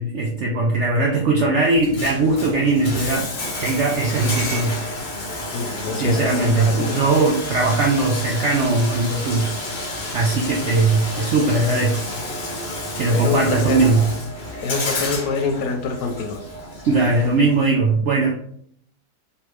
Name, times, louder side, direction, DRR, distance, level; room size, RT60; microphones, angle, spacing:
voice 1, 0.0-3.3 3.6-4.9 5.9-12.0 12.9-14.0 16.9-18.4, right 3 dB, 90° right, 0 dB, 0.6 m, -20 dB
Bathtub (filling or washing), 1.7-17.7, left 1 dB, 50° left, 0.6 m, -30 dB
voice 2, 5.5-7.0 12.9-14.0 14.6-16.4, left 4 dB, 70° left, 5 dB, 1.1 m, -25 dB
3.3 x 3.0 x 3.1 m, 0.65 s
omnidirectional pair, 1.8 m